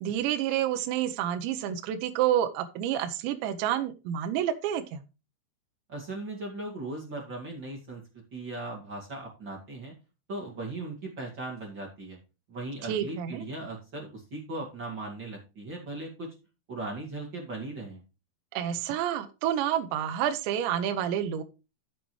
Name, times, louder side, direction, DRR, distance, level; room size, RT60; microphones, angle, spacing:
voice 1, 0.0-5.0 12.9-13.4 18.5-21.4, right 10 dB, 80° right, 8 dB, 2.7 m, -29 dB
voice 2, 5.9-8.0 8.3-9.9 10.3-12.2 12.5-16.3 16.7-18.0, right 2 dB, 40° right, -2 dB, 1.7 m, -38 dB
12.5 x 7.5 x 3.2 m, 0.29 s
omnidirectional pair, 5.9 m